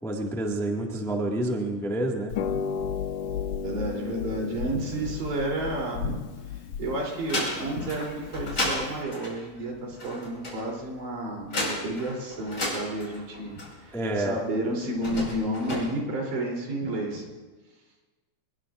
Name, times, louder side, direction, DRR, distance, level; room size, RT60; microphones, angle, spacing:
voice 1, 0.0-2.3 13.9-14.4, right 1 dB, ahead, 0 dB, 0.8 m, -28 dB
Harp, 2.3-9.0, left 7 dB, 85° left, 1.3 m, -34 dB
voice 2, 3.6-6.2 6.5-17.2, right 1 dB, 85° right, -1 dB, 5.0 m, -31 dB
sound 1, 6.1-6.7 7.1-14.1 14.9-15.8, left 1 dB, 30° left, 5.7 m, -33 dB
25.0 x 20.5 x 2.6 m, 1.3 s
omnidirectional pair, 3.6 m